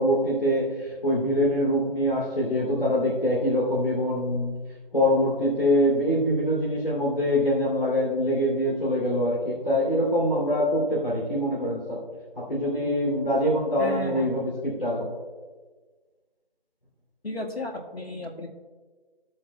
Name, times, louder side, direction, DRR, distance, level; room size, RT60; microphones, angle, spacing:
voice 1, 0.0-4.5 4.9-12.0 12.3-15.2, equal, 60° left, -6 dB, 3.2 m, -24 dB
voice 2, 13.8-14.3 17.2-18.5, left 1 dB, 80° left, 1 dB, 1.8 m, -33 dB
16.0 x 8.1 x 2.3 m, 1.4 s
figure-of-eight pair, 170°, 30 cm